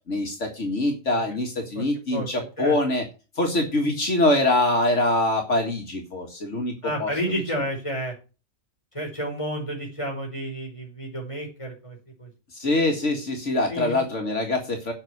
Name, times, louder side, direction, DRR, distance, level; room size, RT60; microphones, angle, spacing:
voice 1, 0.1-3.0 3.4-6.7 7.0-7.1 12.5-14.9, left 1 dB, 75° left, 2 dB, 2.2 m, -24 dB
voice 2, 6.8-8.1 8.9-12.3 13.7-14.0, equal, 25° left, 0 dB, 5.1 m, -31 dB
8.9 x 6.0 x 7.7 m, 0.32 s
omnidirectional pair, 1.2 m